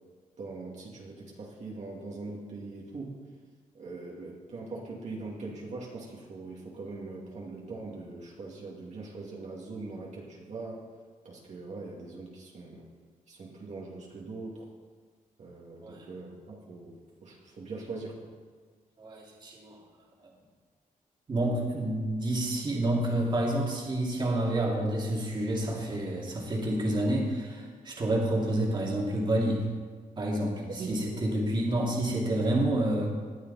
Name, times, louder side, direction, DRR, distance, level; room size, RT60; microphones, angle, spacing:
voice 1, 0.4-3.2 3.7-10.9 11.2-12.9 13.3-14.7 15.4-18.3 30.7-31.0, right 3 dB, 55° right, -3 dB, 2.3 m, -41 dB
voice 2, 19.0-19.8 21.3-29.6 30.2-33.1, right 1 dB, 30° right, -2 dB, 2.5 m, -29 dB
19.5 x 12.0 x 4.1 m, 1.5 s
wide cardioid pair, 170°, 14 cm